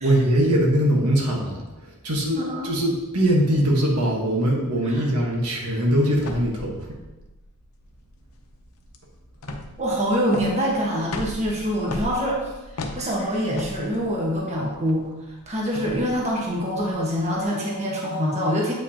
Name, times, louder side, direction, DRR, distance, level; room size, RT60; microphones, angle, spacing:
voice 1, 0.0-7.0, right 1 dB, 90° right, -1 dB, 1.3 m, -22 dB
voice 2, 2.3-2.7 4.9-5.0 9.8-12.4 12.9-15.1 15.5-18.7, equal, 30° right, -3 dB, 1.3 m, -25 dB
sound 1, 6.2-17.4, left 1 dB, 85° left, 0.8 m, -38 dB
7.9 x 5.2 x 2.8 m, 1.1 s
head